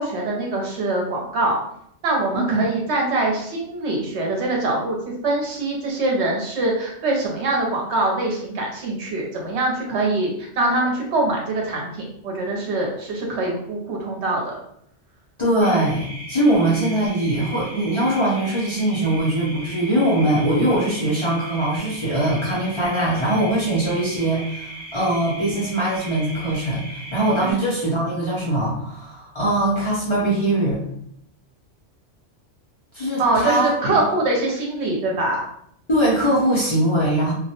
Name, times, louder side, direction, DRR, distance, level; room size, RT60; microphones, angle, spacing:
voice 1, 0.0-1.6 2.0-14.6 27.4-27.5 33.2-35.4, right 2 dB, 70° right, -1 dB, 0.9 m, -23 dB
voice 2, 15.4-30.8 32.9-33.9 35.9-37.3, right 1 dB, 40° left, -7 dB, 0.4 m, -21 dB
sound 1, 15.6-27.5, equal, 30° right, 0.6 m, -37 dB
2.2 x 2.0 x 2.8 m, 0.71 s
omnidirectional pair, 1.2 m